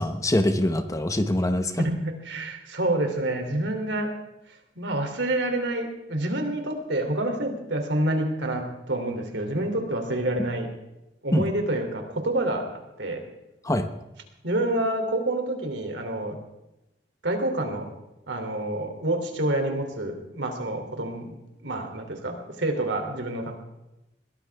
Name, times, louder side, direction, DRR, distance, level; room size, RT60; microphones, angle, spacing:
voice 1, 0.0-1.8 11.3-11.5 13.6-13.9, left 1 dB, 20° left, 8 dB, 1.0 m, -24 dB
voice 2, 1.8-4.1 4.8-10.7 11.2-12.6 13.0-13.2 14.4-16.4 17.2-17.8 18.3-23.6, right 1 dB, 80° right, 4 dB, 3.1 m, -28 dB
22.0 x 17.5 x 3.5 m, 0.95 s
head